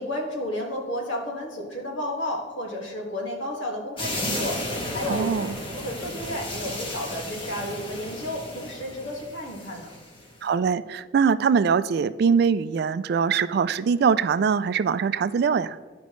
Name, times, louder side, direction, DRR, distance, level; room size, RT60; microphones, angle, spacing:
voice 1, 0.0-4.6 4.9-5.4 5.7-9.9, left 1 dB, 85° left, -1 dB, 1.8 m, -32 dB
sound 1, 4.0-10.3, left 1 dB, 30° left, 1.3 m, -33 dB
voice 2, 5.1-5.5 10.4-15.8, right 6 dB, 55° right, 14 dB, 0.3 m, -22 dB
13.5 x 5.1 x 3.1 m, 1.4 s
head